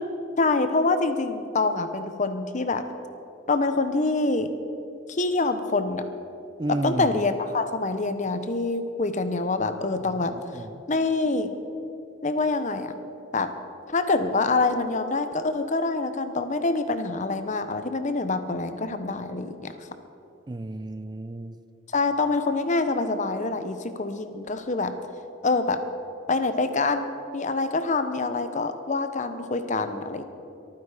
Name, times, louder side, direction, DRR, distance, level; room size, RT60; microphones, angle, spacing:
voice 1, 0.4-2.8 3.5-4.5 5.1-6.0 6.7-10.3 10.9-11.5 12.2-12.9 13.3-13.5 13.9-19.7 21.9-24.9 25.4-25.8 26.3-30.2, left 3 dB, 40° left, 9 dB, 0.9 m, -25 dB
voice 2, 6.6-7.2 10.3-10.8 20.5-21.6, right 1 dB, 20° right, 11 dB, 0.4 m, -32 dB
23.5 x 9.5 x 5.0 m, 2.7 s
head